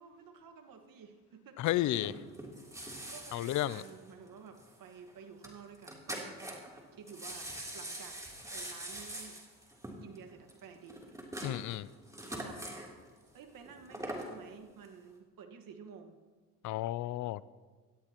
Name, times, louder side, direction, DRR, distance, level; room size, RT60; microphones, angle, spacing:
voice 1, 0.0-1.6 2.7-6.6 6.9-8.2 8.5-9.4 10.0-11.0 12.3-12.6 13.0-16.2, right 6 dB, 60° right, 6 dB, 1.6 m, -52 dB
voice 2, 1.6-2.1 3.3-3.8 11.4-11.9 16.6-17.4, left 14 dB, 50° left, 19 dB, 0.4 m, -32 dB
sound 1, 1.9-4.7 5.0-5.1 5.4-5.5 5.7-6.8 7.1-12.9 13.7-14.3 14.8-14.9, right 1 dB, 10° right, 3.2 m, -43 dB
18.5 x 13.5 x 3.0 m, 1.4 s
supercardioid pair, 80°, 38 cm